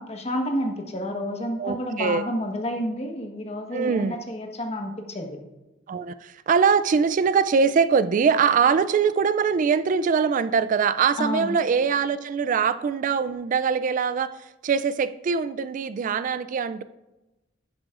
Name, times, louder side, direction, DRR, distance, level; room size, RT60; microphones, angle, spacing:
voice 1, 0.0-5.4 11.2-11.5, left 1 dB, 35° left, 4 dB, 1.2 m, -30 dB
voice 2, 1.6-2.2 3.7-4.2 5.9-14.3 14.6-16.8, right 6 dB, 45° right, 14 dB, 0.3 m, -22 dB
11.0 x 10.0 x 2.5 m, 1.0 s
head